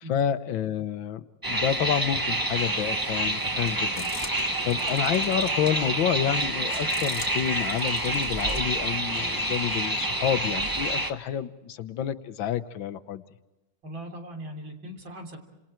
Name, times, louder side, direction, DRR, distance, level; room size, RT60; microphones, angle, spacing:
voice 1, 0.1-13.2, left 9 dB, 80° left, 12 dB, 1.7 m, -29 dB
sound 1, 1.4-11.1, right 1 dB, 10° right, 1.2 m, -28 dB
sound 2, 2.9-8.8, left 2 dB, 30° left, 2.9 m, -44 dB
voice 2, 13.8-15.4, equal, 80° right, 2 dB, 4.1 m, -39 dB
30.0 x 27.5 x 4.5 m, 1.1 s
omnidirectional pair, 2.1 m